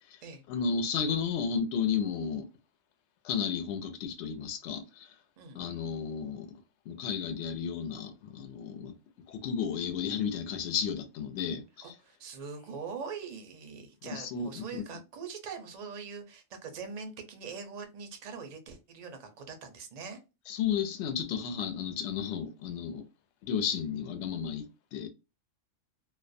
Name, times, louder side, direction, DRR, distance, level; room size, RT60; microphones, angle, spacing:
voice 1, 0.5-2.5 3.2-5.1 5.5-6.5 6.9-8.9 9.3-11.9 14.0-14.8 20.5-23.1 23.4-25.1, left 7 dB, 70° left, 0.8 m, -33 dB
voice 2, 11.8-20.2, right 5 dB, 50° right, 0.5 m, -42 dB
2.4 x 2.1 x 2.5 m
omnidirectional pair, 1.3 m